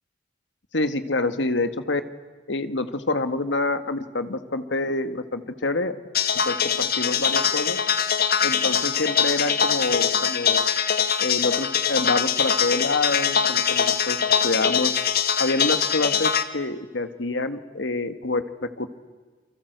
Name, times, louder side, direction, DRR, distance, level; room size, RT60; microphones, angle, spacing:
voice 1, 0.7-2.0 2.5-6.0 6.5-7.8 8.4-10.6 11.2-14.9 15.4-18.9, left 2 dB, 70° left, 10 dB, 1.7 m, -27 dB
sound 1, 6.1-16.4, left 7 dB, 55° left, 1.5 m, -23 dB
29.0 x 24.5 x 8.1 m, 1.4 s
head